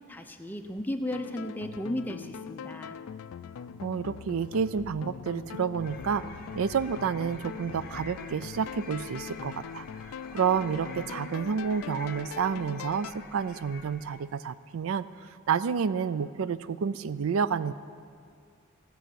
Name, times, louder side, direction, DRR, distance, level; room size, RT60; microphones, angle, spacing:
voice 1, 0.1-3.0, left 1 dB, 10° left, 6 dB, 0.5 m, -35 dB
sound 1, 1.1-13.1, left 7 dB, 75° left, 0.3 m, -42 dB
voice 2, 3.8-9.9 10.3-15.1 15.5-17.7, right 6 dB, 70° right, 16 dB, 0.4 m, -29 dB
sound 2, 5.8-14.4, left 4 dB, 40° left, 0.8 m, -48 dB
16.5 x 5.7 x 7.6 m, 2.2 s
head